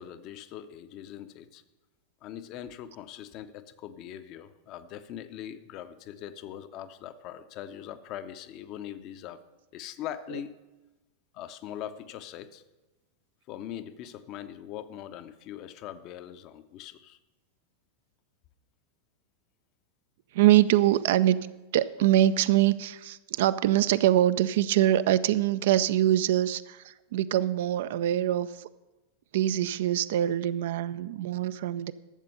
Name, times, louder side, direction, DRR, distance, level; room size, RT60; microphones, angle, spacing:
voice 1, 0.0-1.6 2.2-9.4 9.7-10.6 11.3-12.6 13.5-17.2, left 10 dB, 40° left, 11 dB, 0.6 m, -41 dB
voice 2, 20.3-21.5 21.7-28.7 29.3-31.9, right 13 dB, 55° right, 15 dB, 0.3 m, -24 dB
12.0 x 7.5 x 5.4 m, 1.1 s
figure-of-eight pair, 90°, 0 cm